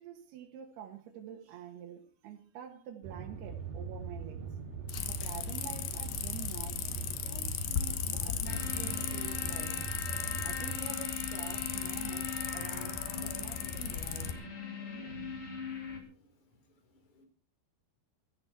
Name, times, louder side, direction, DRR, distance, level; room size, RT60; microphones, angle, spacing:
voice 1, 0.0-4.4 5.0-6.9 7.2-9.9 10.4-14.4, right 9 dB, 80° right, 3.4 m, -47 dB
sound 1, 3.0-10.8, right 5 dB, 60° right, 4.9 m, -41 dB
sound 2, 4.9-14.3, left 10 dB, 75° left, 3.2 m, -37 dB
sound 3, 8.5-16.0, left 4 dB, 30° left, 4.1 m, -41 dB
voice 2, 15.7-17.3, equal, 50° left, 4.9 m, -65 dB
16.5 x 14.0 x 4.5 m
omnidirectional pair, 4.5 m